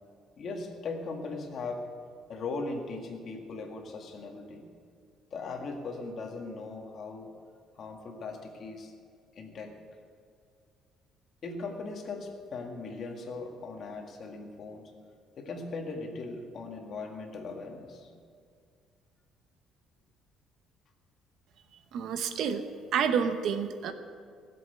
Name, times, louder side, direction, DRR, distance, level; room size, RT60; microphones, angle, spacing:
voice 1, 0.4-1.9 2.3-4.7 5.3-7.3 7.8-8.9 9.3-9.7 11.4-14.8 15.4-18.1, left 3 dB, 45° left, 2 dB, 1.9 m, -39 dB
voice 2, 21.9-22.6 22.9-23.9, right 7 dB, 60° right, 9 dB, 0.9 m, -29 dB
16.5 x 7.8 x 8.1 m, 2.2 s
cardioid pair, 155°, 0 cm